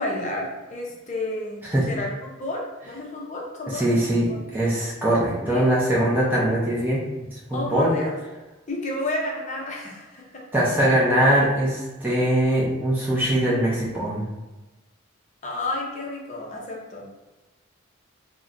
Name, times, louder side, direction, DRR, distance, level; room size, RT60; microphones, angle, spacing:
voice 1, 0.0-1.6 1.9-4.0 4.3-4.4 5.5-5.7 7.5-8.2 8.7-10.4 15.4-17.1, left 2 dB, 35° left, -1 dB, 0.6 m, -31 dB
voice 2, 3.7-7.0 7.5-7.9 10.5-14.2, right 1 dB, 10° right, -7 dB, 0.6 m, -22 dB
2.5 x 2.1 x 3.7 m, 1.1 s
head